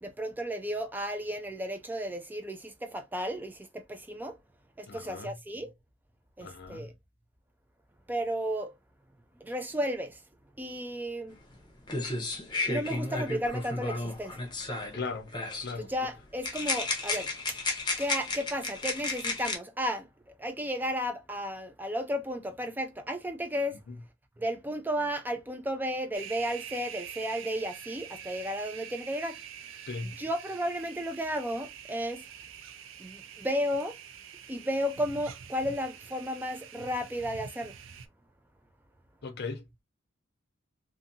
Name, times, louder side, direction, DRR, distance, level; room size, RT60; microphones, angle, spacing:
voice 1, 0.0-4.4 4.8-5.7 6.4-6.9 8.1-8.7 9.4-10.2 10.6-11.4 12.7-14.4 15.8-17.6 18.0-20.1 20.4-23.8 24.4-29.4 30.2-32.2 33.0-34.0 34.5-37.7, equal, 10° right, 0.4 m, -33 dB
voice 2, 4.9-5.4 6.4-6.9 14.9-15.3 15.6-15.9 23.9-24.0 29.9-30.2 39.2-39.6, left 4 dB, 55° left, 0.5 m, -37 dB
sound 1, 11.5-11.6 11.9-15.0 15.3-15.7 16.4-19.6, left 3 dB, 25° left, 0.8 m, -33 dB
sound 2, 26.1-38.1, right 8 dB, 85° right, 0.4 m, -46 dB
2.6 x 2.5 x 2.6 m
head